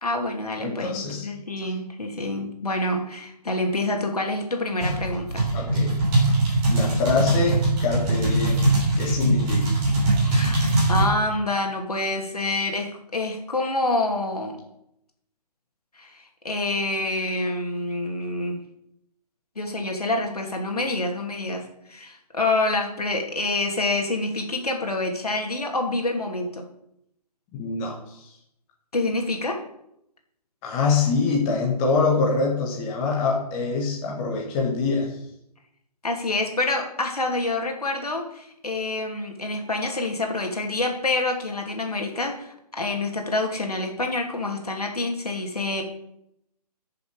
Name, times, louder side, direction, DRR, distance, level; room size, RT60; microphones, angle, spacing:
voice 1, 0.0-5.5 10.3-14.6 16.0-18.6 19.6-26.6 28.9-29.6 36.0-45.8, left 2 dB, 65° left, 2 dB, 2.7 m, -27 dB
voice 2, 0.6-1.3 5.5-5.9 6.2-6.3 6.7-9.8 27.5-28.3 30.6-35.2, left 4 dB, 15° left, -2 dB, 1.6 m, -25 dB
sound 1, 4.8-11.1, right 2 dB, 20° right, 3.4 m, -21 dB
14.5 x 6.9 x 5.2 m, 0.78 s
figure-of-eight pair, 140°, 21 cm